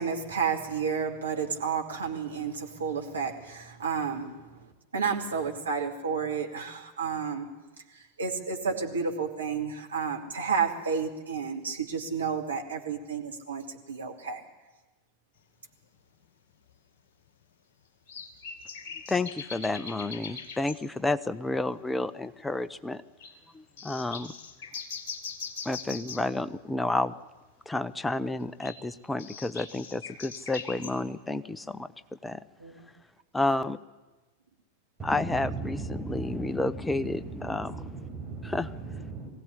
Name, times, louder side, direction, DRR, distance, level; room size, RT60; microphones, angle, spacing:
voice 1, 0.0-4.5 4.9-7.5 7.9-14.4 32.6-32.9, right 6 dB, 75° right, 2.5 m, -31 dB
sound 1, 15.8-15.9 16.7-16.8 18.1-20.8 21.5-21.6 21.8-21.9 22.3-22.6 23.2-23.4 23.8-26.3 28.4-31.0, left 6 dB, 50° left, 2.3 m, -41 dB
voice 2, 19.1-23.0 23.5-24.3 25.6-27.1 27.7-32.4 33.3-33.8 35.0-37.7 38.4-38.7, left 2 dB, 10° left, 0.7 m, -30 dB
voice 3, 35.0-39.3, right 4 dB, 15° right, 7.0 m, -38 dB
22.0 x 16.5 x 9.9 m
figure-of-eight pair, 90°, 0 cm